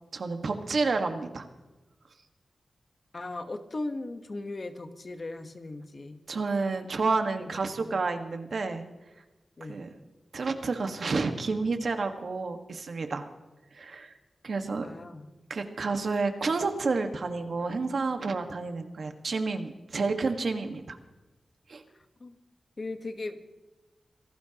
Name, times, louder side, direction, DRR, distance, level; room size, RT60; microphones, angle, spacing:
voice 1, 0.1-1.5 6.3-8.8 9.7-9.9 10.3-13.3 13.7-14.1 14.4-14.9 15.5-21.0 21.7-21.8, right 3 dB, 60° right, 5 dB, 1.6 m, -30 dB
voice 2, 3.1-6.2 7.4-7.9 9.6-9.8 14.8-15.3 21.9-22.4 22.8-23.4, left 2 dB, 40° left, 7 dB, 1.2 m, -38 dB
26.5 x 17.5 x 3.0 m, 1.1 s
wide cardioid pair, 140°, 0 cm